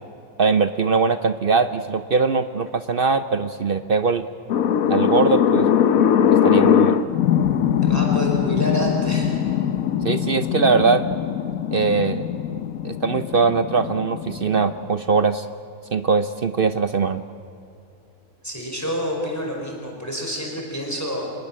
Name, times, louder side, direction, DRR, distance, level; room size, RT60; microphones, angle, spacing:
voice 1, 0.4-4.3 4.9-5.7 6.3-7.0 10.0-11.0 11.7-12.2 12.8-15.5 15.9-17.2, right 4 dB, 50° right, 11 dB, 0.7 m, -21 dB
sound 1, 4.5-14.9, left 9 dB, 75° left, 1.3 m, -21 dB
voice 2, 7.8-9.3 18.4-21.3, equal, 10° left, -1 dB, 5.0 m, -28 dB
26.0 x 21.0 x 7.5 m, 2.8 s
omnidirectional pair, 1.5 m